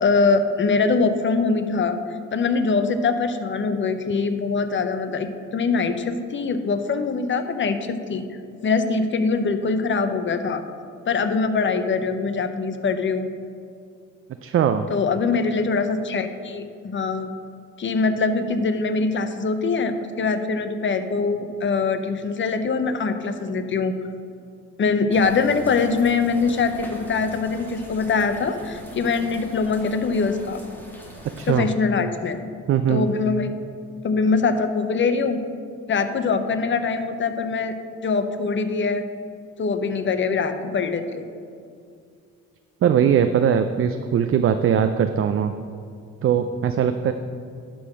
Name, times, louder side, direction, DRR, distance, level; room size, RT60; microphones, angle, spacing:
voice 1, 0.0-2.0 2.3-8.2 8.6-10.6 11.1-13.3 14.9-17.3 17.8-23.9 24.8-30.6 31.5-32.4 32.9-33.5 34.0-35.4 35.9-37.7 38.0-39.0 39.6-41.3, left 4 dB, 40° left, 9 dB, 0.7 m, -23 dB
voice 2, 14.4-14.9 31.4-31.7 32.7-33.1 42.8-45.5 46.2-47.1, right 8 dB, 45° right, 8 dB, 0.4 m, -20 dB
sound 1, 25.1-31.5, equal, 5° left, 1.6 m, -42 dB
11.0 x 3.8 x 6.1 m, 2.3 s
cardioid pair, 90°, 30 cm